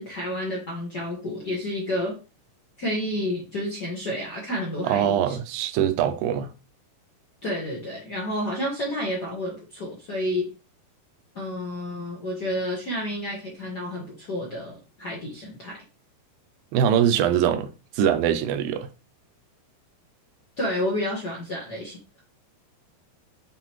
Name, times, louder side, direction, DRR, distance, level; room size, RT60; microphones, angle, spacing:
voice 1, 0.0-2.1 2.8-5.4 7.4-10.5 11.3-15.8 20.6-22.0, left 1 dB, 75° left, 0.9 m, -30 dB
voice 2, 4.8-6.5 16.7-17.7 18.0-18.9, right 9 dB, 80° right, 2.3 m, -22 dB
8.0 x 4.0 x 3.0 m
omnidirectional pair, 4.3 m